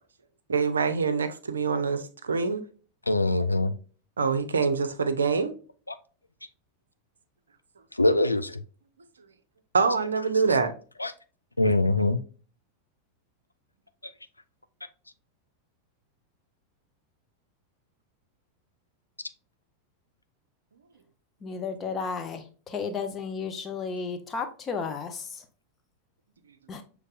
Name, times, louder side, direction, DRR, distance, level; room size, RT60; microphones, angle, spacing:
voice 1, 0.5-2.6 4.2-5.5 9.7-10.7, right 5 dB, 70° right, 0.5 m, -25 dB
voice 2, 3.1-3.7 5.9-6.0 7.9-8.6 10.2-10.6 11.0-11.1 11.6-12.2, left 2 dB, 85° left, 0.3 m, -24 dB
voice 3, 21.4-25.4 26.7-26.8, left 5 dB, 25° left, 0.8 m, -33 dB
6.5 x 3.2 x 2.4 m
figure-of-eight pair, 90°, 0 cm